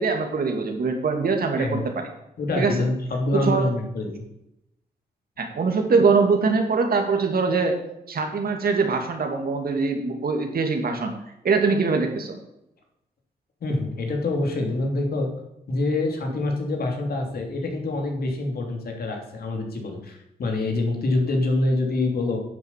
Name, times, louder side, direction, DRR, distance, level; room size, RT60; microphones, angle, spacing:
voice 1, 0.0-2.1 2.6-2.8 3.4-3.7 5.4-7.8 8.1-11.1 11.4-12.4, right 4 dB, 65° right, 4 dB, 2.5 m, -23 dB
voice 2, 1.5-1.8 2.4-4.2 13.6-15.3 15.7-22.4, left 2 dB, 70° left, 2 dB, 3.0 m, -26 dB
10.0 x 8.0 x 7.5 m, 0.85 s
cardioid pair, 70°, 16 cm